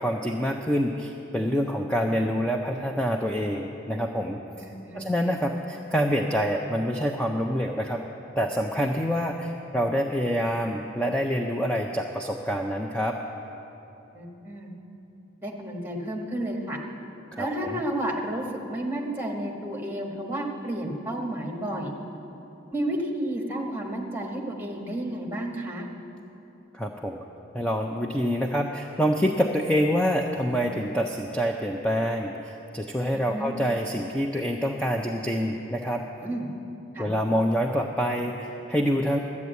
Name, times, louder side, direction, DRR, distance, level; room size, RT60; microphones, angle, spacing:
voice 1, 0.0-4.4 4.9-8.0 8.4-13.2 17.3-17.8 26.7-27.2 27.5-36.0 37.0-39.2, equal, 5° left, 2 dB, 0.5 m, -26 dB
voice 2, 4.6-5.1 14.1-14.7 15.4-16.8 17.4-21.9 22.7-25.9 33.1-33.5 36.2-36.5 36.9-37.1, right 1 dB, 10° right, 0 dB, 1.3 m, -31 dB
12.5 x 8.5 x 8.1 m, 3.0 s
head